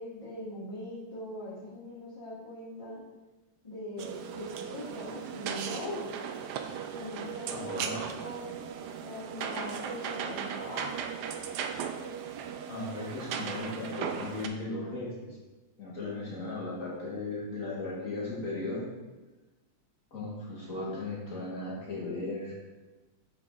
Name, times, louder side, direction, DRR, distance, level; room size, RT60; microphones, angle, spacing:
voice 1, 0.0-3.0 3.6-6.1 6.9-8.5 9.0-11.4, left 1 dB, 15° left, -12 dB, 1.6 m, -41 dB
sound 1, 4.0-14.5, right 7 dB, 90° right, 0.9 m, -37 dB
voice 2, 7.4-8.0 12.7-15.3 15.8-18.8 20.1-22.5, left 2 dB, 40° left, -5 dB, 2.0 m, -36 dB
7.6 x 3.9 x 3.7 m, 1.2 s
omnidirectional pair, 2.3 m